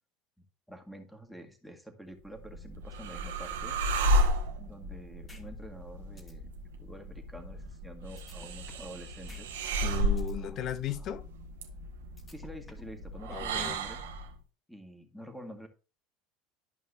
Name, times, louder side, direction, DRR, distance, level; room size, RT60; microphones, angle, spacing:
voice 1, 0.4-3.8 4.6-6.5 6.8-9.5 10.3-10.6 12.3-14.0 14.7-15.7, equal, ahead, 1.7 m, -48 dB
sound 1, 2.3-14.3, right 1 dB, 85° right, 1.2 m, -33 dB
sound 2, 5.3-5.4 5.8-5.9 6.2-6.3 8.2-8.9 9.3-9.4 9.8-10.3 12.2-12.9, left 2 dB, 25° left, 2.0 m, -53 dB
voice 2, 9.8-11.3 13.3-13.8, left 11 dB, 50° left, 0.7 m, -36 dB
12.0 x 5.4 x 2.7 m
hypercardioid pair, 80°, 0 cm